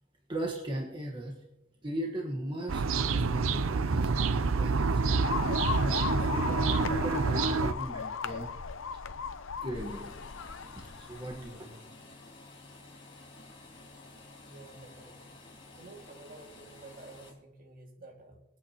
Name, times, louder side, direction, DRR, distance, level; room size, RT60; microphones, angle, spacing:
voice 1, 0.3-1.4 1.8-8.8 9.6-10.3 10.8-11.8, right 1 dB, 25° right, 0 dB, 1.4 m, -38 dB
sound 1, 2.7-7.7, right 4 dB, 85° right, 0.6 m, -27 dB
sound 2, 5.2-11.6, left 6 dB, 75° left, 0.7 m, -37 dB
sound 3, 9.7-17.3, left 2 dB, 25° left, 5.9 m, -52 dB
voice 2, 14.5-15.4 15.7-18.4, right 2 dB, 45° right, 2 dB, 2.2 m, -51 dB
25.5 x 8.7 x 3.0 m, 0.95 s
head